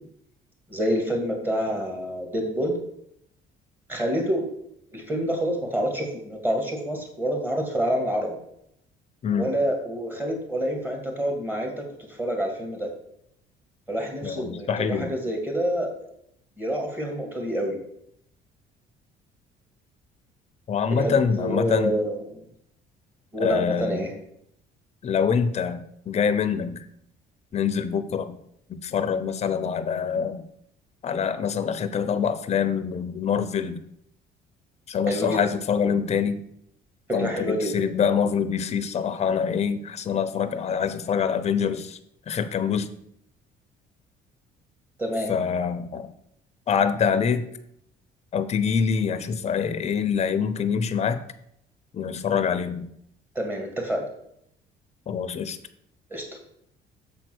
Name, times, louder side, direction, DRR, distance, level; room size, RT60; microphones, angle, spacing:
voice 1, 0.7-2.8 3.9-4.4 4.9-8.4 9.3-12.9 13.9-15.9 16.6-17.8 20.9-22.4 23.3-24.1 35.1-35.4 37.1-37.8 45.0-45.3 53.3-54.1 56.1-56.4, equal, 10° right, 1 dB, 2.3 m, -27 dB
voice 2, 14.2-15.1 20.7-22.0 23.4-24.0 25.0-26.9 27.5-28.3 28.7-30.4 31.0-33.8 34.9-36.4 37.1-42.0 42.3-42.9 45.3-46.1 46.7-47.5 48.3-51.2 51.9-52.9 55.1-55.6, left 6 dB, 40° left, 10 dB, 0.8 m, -25 dB
7.4 x 4.5 x 6.2 m, 0.73 s
cardioid pair, 110°, 17 cm